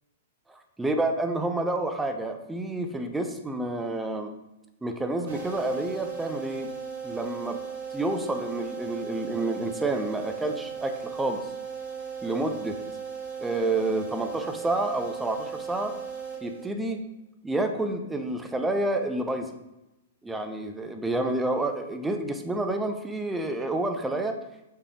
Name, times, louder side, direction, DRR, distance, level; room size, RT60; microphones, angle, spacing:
voice 1, 0.5-4.3 4.8-6.7 7.0-7.6 7.9-11.4 12.2-12.8 13.4-15.9 16.4-17.0 17.4-19.5 20.2-24.4, right 2 dB, 5° right, 5 dB, 0.6 m, -29 dB
sound 1, 5.3-17.0, right 6 dB, 60° right, 2.4 m, -37 dB
6.6 x 5.0 x 3.6 m, 0.92 s
figure-of-eight pair, 105°, 0 cm